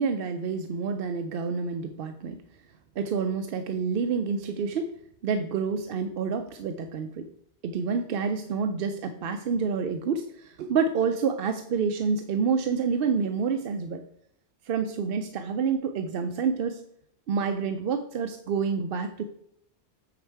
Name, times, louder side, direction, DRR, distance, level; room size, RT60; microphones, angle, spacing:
voice 1, 0.0-2.4 3.0-4.9 5.2-7.3 7.6-14.0 14.7-16.8 17.3-19.2, right 5 dB, 65° right, 8 dB, 0.7 m, -28 dB
8.3 x 4.5 x 4.6 m, 0.71 s
omnidirectional pair, 1.2 m